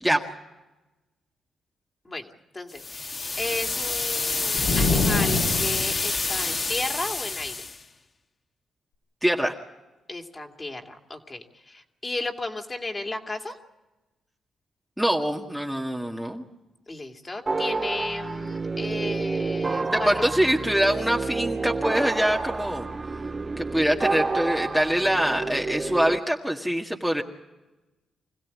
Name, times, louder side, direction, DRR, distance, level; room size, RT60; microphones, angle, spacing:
voice 1, 2.5-7.7 10.1-13.6 16.9-20.2, left 2 dB, 25° left, 3 dB, 2.6 m, -34 dB
sound 1, 2.8-7.8, left 3 dB, 40° left, 2.1 m, -28 dB
sound 2, 4.6-6.1, left 3 dB, 80° left, 4.2 m, -25 dB
voice 2, 9.2-9.5 15.0-16.4 19.8-22.9 23.6-27.2, equal, 5° right, 0 dB, 1.8 m, -24 dB
sound 3, 17.5-26.2, right 3 dB, 30° right, 0.8 m, -29 dB
25.5 x 16.0 x 8.5 m, 1.1 s
cardioid pair, 75°, 0 cm